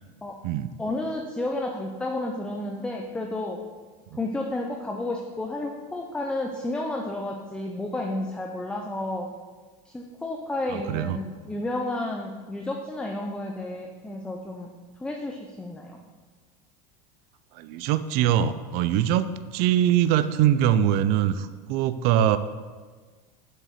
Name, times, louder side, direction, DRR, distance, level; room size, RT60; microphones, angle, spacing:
voice 1, 0.8-3.6 4.1-9.3 9.8-14.7 15.0-16.0, left 2 dB, 5° left, 2 dB, 0.5 m, -31 dB
voice 2, 10.7-11.2 17.5-22.4, right 10 dB, 50° right, 12 dB, 0.4 m, -23 dB
7.5 x 6.5 x 6.5 m, 1.4 s
supercardioid pair, 155°, 20 cm